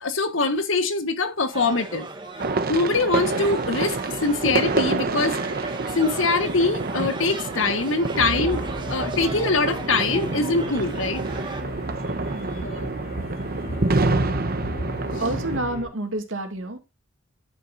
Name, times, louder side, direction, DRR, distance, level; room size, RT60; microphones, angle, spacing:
voice 1, 0.0-2.1 2.7-5.4 5.9-11.2 12.6-12.9, left 3 dB, 85° left, 1.5 m, -23 dB
sound 1, 1.5-11.6, right 3 dB, 25° right, 1.7 m, -37 dB
sound 2, 2.4-15.6, right 3 dB, 50° right, 1.0 m, -27 dB
sound 3, 8.2-15.9, equal, 55° left, 3.5 m, -36 dB
voice 2, 12.3-12.8 15.2-16.8, right 1 dB, 85° right, 2.4 m, -29 dB
10.5 x 9.2 x 2.6 m
head